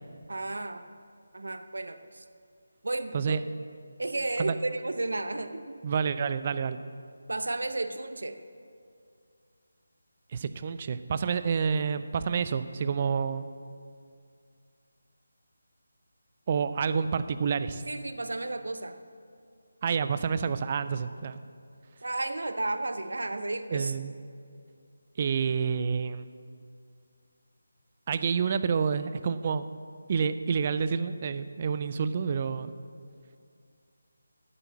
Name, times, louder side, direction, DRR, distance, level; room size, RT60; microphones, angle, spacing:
voice 1, 0.3-0.8 1.3-2.2 2.8-3.4 4.0-5.7 7.3-8.4 17.9-19.0 22.0-23.9, right 2 dB, 70° right, 10 dB, 0.7 m, -33 dB
voice 2, 5.8-6.8 10.3-13.5 16.5-17.8 19.8-21.4 23.7-24.1 25.2-26.3 28.1-29.7 30.1-32.8, right 6 dB, 35° right, 12 dB, 0.4 m, -28 dB
8.8 x 8.2 x 7.4 m, 2.3 s
figure-of-eight pair, 160°, 0 cm